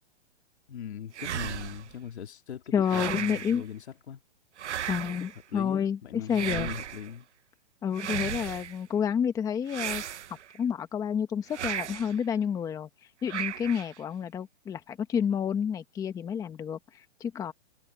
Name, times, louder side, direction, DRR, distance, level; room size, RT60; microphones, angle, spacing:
voice 1, 0.7-4.2 5.5-7.3, left 9 dB, 70° left, 3.6 m, -40 dB
sound 1, 1.1-1.9 2.8-3.6 4.6-5.4 6.3-7.1 7.9-8.8 9.7-10.6 11.5-12.2 13.3-14.0, right 10 dB, 80° right, 1.0 m, -35 dB
voice 2, 2.7-3.6 4.9-6.7 7.8-10.0 10.6-12.9 13.2-17.5, left 8 dB, 10° left, 1.3 m, -29 dB
hypercardioid pair, 155°, 34 cm